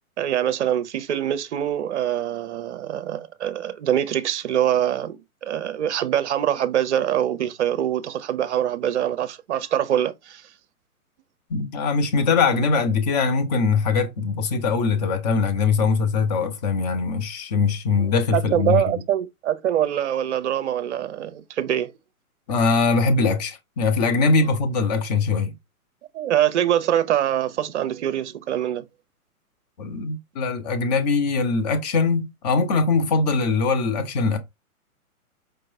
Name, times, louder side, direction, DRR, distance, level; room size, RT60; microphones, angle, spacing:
voice 1, 0.2-10.5 17.9-21.9 26.1-28.8, right 10 dB, 50° right, 0.6 m, -24 dB
voice 2, 11.5-18.8 22.5-25.5 29.8-34.4, left 4 dB, 30° left, 0.7 m, -22 dB
4.6 x 3.0 x 2.6 m
figure-of-eight pair, 125°, 44 cm